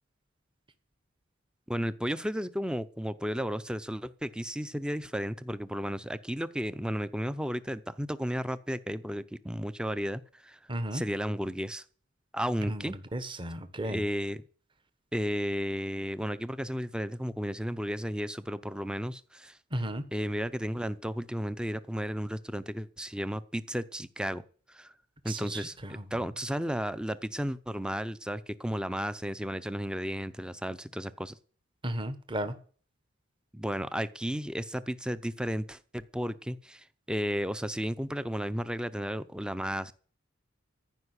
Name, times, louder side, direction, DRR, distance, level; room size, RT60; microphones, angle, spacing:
voice 1, 1.7-10.6 10.9-11.8 12.3-13.0 13.8-14.4 15.1-19.6 20.1-24.4 24.7-24.9 25.2-31.4 33.5-39.9, equal, 5° right, 15 dB, 0.7 m, -33 dB
voice 2, 10.7-11.0 12.7-12.8 13.1-14.0 19.7-20.0 25.3-25.5 25.8-25.9 31.8-32.5, right 1 dB, 25° right, 11 dB, 1.3 m, -33 dB
14.5 x 5.7 x 9.7 m, 0.43 s
head